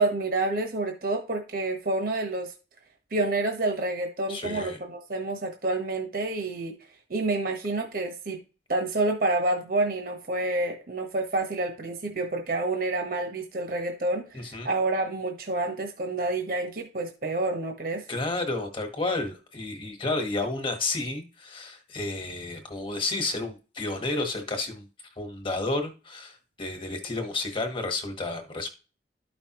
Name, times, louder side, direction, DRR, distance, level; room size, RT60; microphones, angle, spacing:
voice 1, 0.0-2.5 3.1-6.8 7.1-8.4 8.7-18.0, right 2 dB, 55° right, 3 dB, 1.2 m, -28 dB
voice 2, 4.3-4.8 14.3-14.7 18.1-24.9 25.2-28.7, left 2 dB, 30° left, 5 dB, 1.4 m, -31 dB
12.5 x 5.4 x 3.0 m, 0.34 s
head